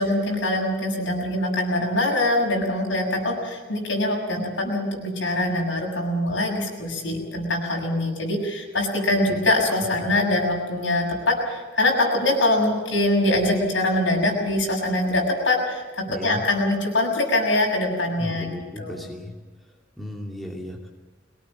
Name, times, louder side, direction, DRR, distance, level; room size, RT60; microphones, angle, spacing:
voice 1, 0.0-18.5 18.8-19.0, left 1 dB, 70° left, 1 dB, 6.9 m, -23 dB
voice 2, 16.1-16.4 18.2-19.3 20.0-20.9, left 1 dB, ahead, -2 dB, 2.7 m, -35 dB
23.0 x 19.0 x 7.5 m, 1.3 s
head